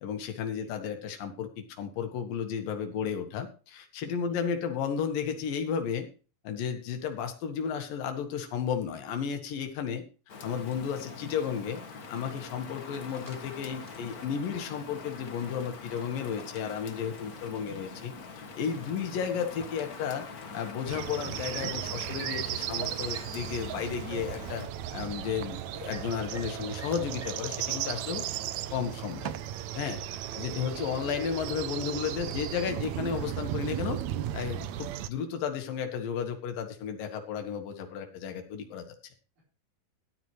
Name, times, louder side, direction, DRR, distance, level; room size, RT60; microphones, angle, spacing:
voice 1, 0.0-6.1 6.4-10.0 10.4-11.8 12.1-20.3 20.5-24.6 24.9-28.2 28.7-29.3 29.7-30.0 30.4-34.0 34.3-38.8, left 7 dB, 80° left, 5 dB, 3.3 m, -33 dB
Rain, 10.3-24.7, left 4 dB, 50° left, 1.1 m, -44 dB
sound 1, 12.4-28.8, equal, 5° right, 4.7 m, -58 dB
sound 2, 20.9-35.1, right 12 dB, 75° right, 1.8 m, -35 dB
voice 2, 28.9-29.4 30.0-31.1 39.4-39.5, right 2 dB, 60° right, -3 dB, 5.5 m, -55 dB
14.0 x 11.5 x 3.2 m, 0.36 s
omnidirectional pair, 3.9 m